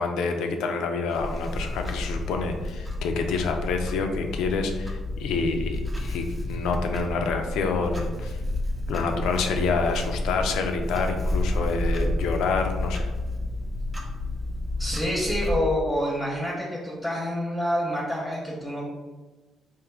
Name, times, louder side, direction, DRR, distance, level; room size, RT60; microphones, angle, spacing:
voice 1, 0.0-8.4 8.9-13.1, left 4 dB, 90° left, 4 dB, 0.4 m, -27 dB
Clock, 1.1-15.6, left 1 dB, 20° right, 0.6 m, -30 dB
voice 2, 8.9-9.2 14.8-18.8, equal, 10° left, -5 dB, 0.8 m, -28 dB
3.5 x 2.5 x 3.5 m, 1.2 s
cardioid pair, 90°, 0 cm